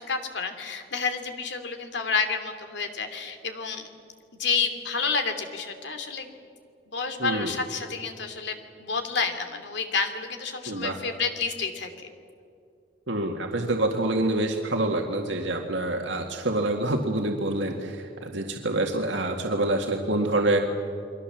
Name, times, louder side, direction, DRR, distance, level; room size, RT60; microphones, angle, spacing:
voice 1, 0.0-3.8 4.3-6.3 6.9-12.1, left 5 dB, 70° left, 7 dB, 2.7 m, -30 dB
voice 2, 7.2-7.5 10.7-11.0 13.1-20.6, right 2 dB, 90° right, 2 dB, 2.0 m, -26 dB
29.5 x 22.5 x 7.4 m, 2.4 s
head